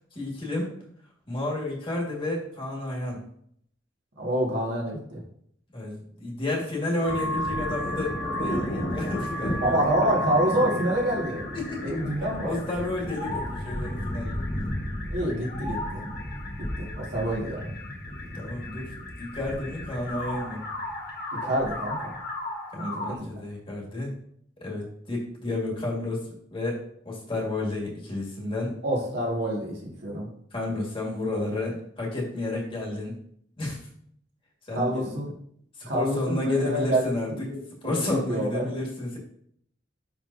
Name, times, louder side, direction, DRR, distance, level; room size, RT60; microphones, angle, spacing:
voice 1, 0.2-0.7 1.3-3.2 5.7-9.8 11.5-11.9 12.4-14.4 18.3-20.6 22.7-24.1 24.6-26.2 26.5-28.8 30.5-33.1 33.6-33.8 34.7-35.1 35.8-37.3 37.8-39.2, left 2 dB, 30° left, -2 dB, 1.8 m, -31 dB
voice 2, 4.2-5.2 9.6-11.5 11.8-12.6 15.1-16.0 16.8-17.7 21.4-22.1 22.7-23.2 28.8-30.3 34.7-35.3 35.8-38.7, right 1 dB, 65° right, -3 dB, 1.9 m, -27 dB
sound 1, 7.0-23.2, left 1 dB, 55° left, 1.1 m, -33 dB
10.5 x 3.5 x 2.7 m, 0.66 s
head